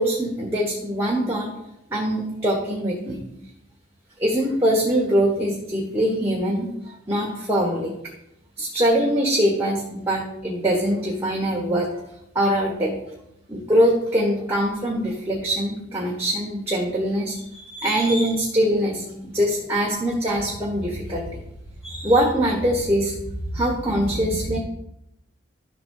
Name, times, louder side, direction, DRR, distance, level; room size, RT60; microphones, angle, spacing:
voice 1, 0.0-1.5 1.9-3.2 4.2-7.9 8.6-12.0 12.3-12.9 13.5-21.4 21.8-23.1 23.5-24.6, equal, 10° right, -2 dB, 1.3 m, -23 dB
12.0 x 4.0 x 6.5 m, 0.81 s
head